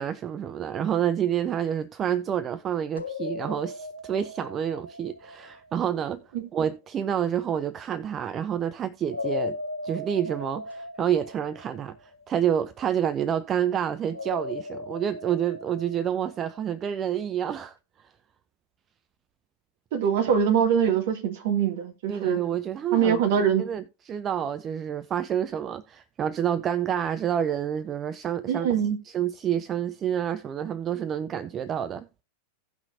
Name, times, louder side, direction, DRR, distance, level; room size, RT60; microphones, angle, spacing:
voice 1, 0.0-6.2 6.5-9.6 9.8-18.1 22.1-28.7 29.1-32.1, right 9 dB, 25° right, 0.5 m, -28 dB
sound 1, 3.0-5.9 9.1-12.4 14.1-16.9, left 3 dB, 85° left, 1.0 m, -37 dB
voice 2, 19.9-22.4 22.9-23.7 28.5-29.0, right 8 dB, 50° right, 1.9 m, -23 dB
17.0 x 5.7 x 2.5 m
figure-of-eight pair, 90°, 0 cm